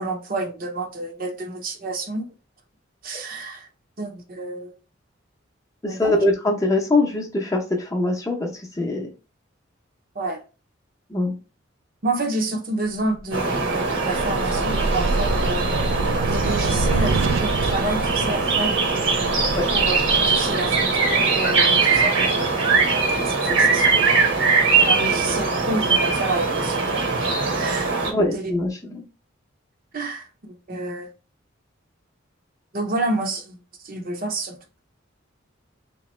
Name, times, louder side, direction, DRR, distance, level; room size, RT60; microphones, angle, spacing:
voice 1, 0.0-2.2 3.0-3.7 4.0-4.7 5.8-6.2 10.1-10.4 12.0-15.7 16.2-18.7 19.7-20.0 20.2-22.5 23.1-24.4 24.9-26.8 27.5-28.5 29.9-31.1 32.7-34.6, right 2 dB, 45° right, 0.7 m, -29 dB
voice 2, 5.8-9.1 11.1-11.4 19.6-19.7 23.5-23.7 28.1-29.0, left 2 dB, 15° left, 0.7 m, -23 dB
sound 1, 13.2-21.6, right 2 dB, 85° right, 0.4 m, -27 dB
sound 2, 13.3-28.1, right 4 dB, 70° right, 1.1 m, -21 dB
3.4 x 3.0 x 3.1 m
head